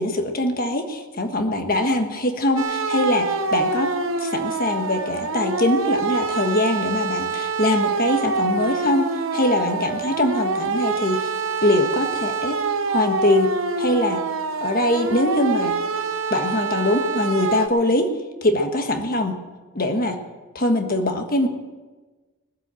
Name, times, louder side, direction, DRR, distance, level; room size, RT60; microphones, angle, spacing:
voice 1, 0.0-11.3 11.6-12.6 12.9-13.5 13.8-14.2 14.6-15.8 16.3-18.1 18.4-19.4 19.7-20.2 20.5-21.5, left 1 dB, 40° left, 5 dB, 1.5 m, -22 dB
sound 1, 2.6-17.7, right 4 dB, 65° right, 0.9 m, -26 dB
19.5 x 7.8 x 7.6 m, 1.3 s
head